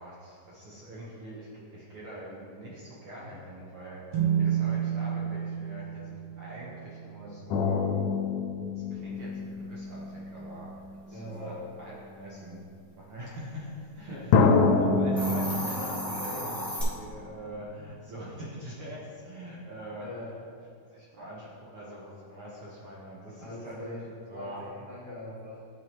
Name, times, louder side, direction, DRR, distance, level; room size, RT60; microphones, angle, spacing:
voice 1, 0.0-4.0 4.4-7.8 8.7-10.7 11.1-12.6 13.0-20.1 20.9-24.0 24.3-24.6, equal, 60° right, -6 dB, 1.5 m, -43 dB
sound 1, 4.1-7.7, right 9 dB, 80° right, 2.4 m, -31 dB
sound 2, 7.5-11.4 12.3-12.4 14.3-17.6 17.9-18.0, left 4 dB, 85° left, 2.1 m, -27 dB
voice 2, 11.1-11.6 14.1-14.5 16.1-16.6 20.0-20.3 23.4-24.1 24.3-25.6, left 1 dB, 50° left, -11 dB, 1.0 m, -42 dB
Hiss, 15.0-16.8, equal, ahead, 0.7 m, -34 dB
12.0 x 4.8 x 2.9 m, 2.3 s
omnidirectional pair, 3.5 m